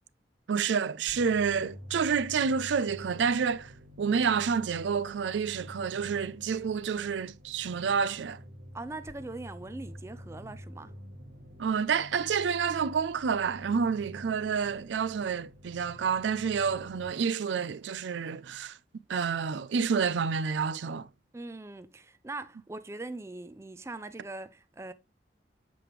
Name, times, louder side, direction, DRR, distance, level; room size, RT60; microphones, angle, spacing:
voice 1, 0.5-3.7 4.0-8.4 11.6-18.8 19.1-21.1, right 6 dB, 85° right, 0.4 m, -29 dB
sound 1, 1.1-17.1, equal, 65° right, 1.6 m, -48 dB
voice 2, 8.7-10.9 21.3-24.9, right 2 dB, 15° right, 0.4 m, -41 dB
7.6 x 5.0 x 3.0 m
head